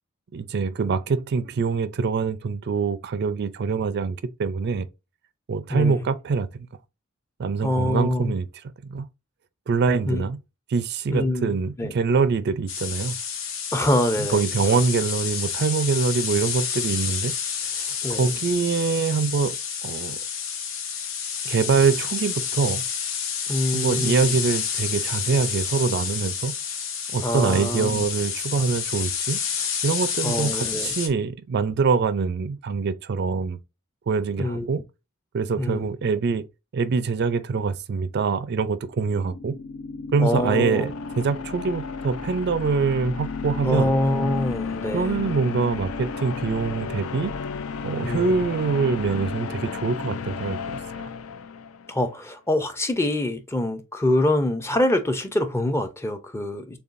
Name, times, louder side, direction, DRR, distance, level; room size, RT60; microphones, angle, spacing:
voice 1, 0.3-4.9 5.5-6.5 7.4-8.5 8.8-9.1 9.7-10.4 10.7-13.2 14.2-17.3 17.6-19.6 19.8-20.2 21.4-22.8 23.7-26.5 27.1-33.6 34.1-34.8 35.3-36.5 36.7-39.5 40.1-43.9 44.9-47.3 47.8-51.1, right 5 dB, 50° right, 0.4 m, -24 dB
voice 2, 5.7-6.0 7.6-8.3 10.1-10.2 11.1-11.9 13.7-14.4 18.0-18.3 23.5-24.4 27.2-28.0 30.2-30.9 34.4-34.7 35.6-35.9 40.2-40.9 43.6-45.2 48.0-48.5 51.9-56.8, left 1 dB, 10° left, 0.5 m, -25 dB
sound 1, 12.7-31.1, left 7 dB, 65° left, 0.9 m, -29 dB
sound 2, 39.1-52.0, left 5 dB, 80° left, 0.5 m, -33 dB
6.7 x 2.3 x 2.5 m
head